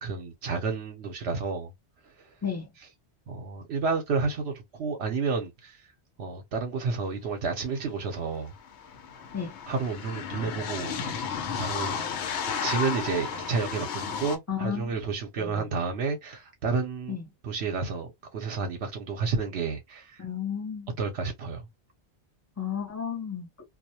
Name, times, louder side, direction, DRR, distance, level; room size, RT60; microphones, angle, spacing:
voice 1, 0.0-1.7 2.0-2.3 3.3-5.9 6.2-8.5 9.7-10.9 11.6-12.0 12.6-17.2 17.4-20.2 21.0-21.7, right 4 dB, 75° right, 0.9 m, -31 dB
sound 1, 7.8-7.9 8.1-14.4, left 6 dB, 90° left, 0.9 m, -33 dB
voice 2, 14.5-15.0 15.4-15.7 17.1-17.3 20.2-20.9 22.6-23.5, left 7 dB, 25° left, 0.4 m, -33 dB
2.3 x 2.0 x 2.7 m
omnidirectional pair, 1.1 m